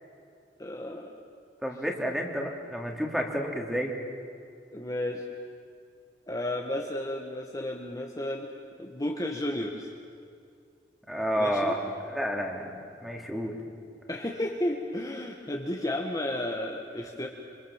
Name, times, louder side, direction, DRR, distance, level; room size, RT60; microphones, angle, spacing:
voice 1, 0.6-1.1 4.7-5.2 6.3-8.5 8.8-9.9 11.4-11.8 14.1-17.3, left 1 dB, 20° left, 0 dB, 1.6 m, -32 dB
voice 2, 1.6-3.9 11.1-11.8 12.1-12.6 13.0-13.6, equal, ahead, 1 dB, 2.9 m, -30 dB
28.0 x 25.5 x 7.4 m, 2.3 s
head